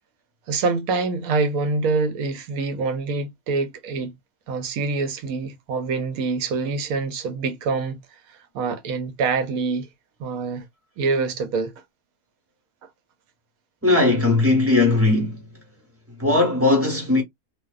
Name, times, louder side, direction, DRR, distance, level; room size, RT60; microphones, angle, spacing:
voice 1, 0.5-4.1 4.5-8.0 8.5-9.9 10.2-10.6 11.0-11.7, right 4 dB, 70° right, 1.0 m, -25 dB
voice 2, 13.8-15.5 16.2-17.2, left 2 dB, 10° right, 0.7 m, -18 dB
2.6 x 2.0 x 2.3 m
omnidirectional pair, 1.6 m